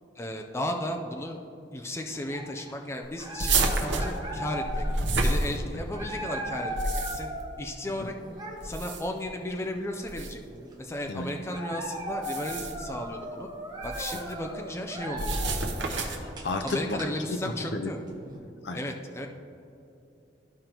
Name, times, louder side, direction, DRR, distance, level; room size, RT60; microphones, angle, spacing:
voice 1, 0.2-1.4 1.7-4.9 5.2-7.3 7.6-8.1 8.6-10.4 10.8-13.5 13.8-15.4 16.6-18.0 18.7-19.3, left 1 dB, 15° left, 3 dB, 0.4 m, -34 dB
sound 1, 2.1-2.8 3.2-7.5 7.9-8.8 9.6-9.7 10.0-10.7 11.2-15.6 16.1-18.4, equal, 25° right, 1.1 m, -38 dB
sound 2, 3.4-6.0 6.6-7.4 8.6-9.2 10.1-10.3 12.1-12.9 13.8-14.3 15.2-16.3, right 2 dB, 80° right, 0.9 m, -29 dB
voice 2, 16.2-17.4 17.7-17.9 18.6-18.8, left 2 dB, 65° left, 6 dB, 0.6 m, -32 dB
13.5 x 5.1 x 3.0 m, 2.7 s
head